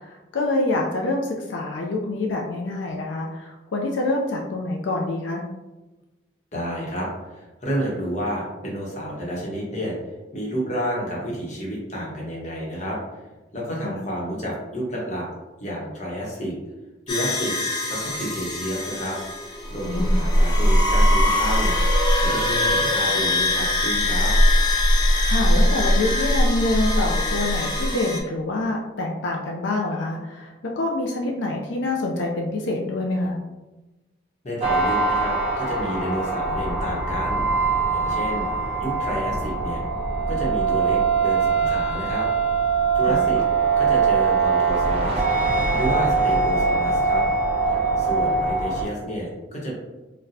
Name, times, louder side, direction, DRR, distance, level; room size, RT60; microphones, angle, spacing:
voice 1, 0.3-5.4 13.8-13.9 19.8-20.1 25.3-33.4 43.1-43.3, left 2 dB, 85° left, -1 dB, 0.4 m, -26 dB
voice 2, 6.5-9.9 10.3-13.0 13.5-15.3 15.6-16.5 17.1-17.5 17.9-19.2 19.7-21.7 22.2-24.3 34.4-38.5 38.8-39.8 40.3-42.3 42.9-43.4 43.8-45.2 45.7-47.2 48.0-49.7, equal, 40° left, -3 dB, 0.8 m, -30 dB
sound 1, 17.1-28.2, left 1 dB, 25° left, 0.4 m, -21 dB
sound 2, 34.6-48.8, right 4 dB, 35° right, 0.9 m, -22 dB
4.0 x 2.1 x 2.6 m, 1.1 s
head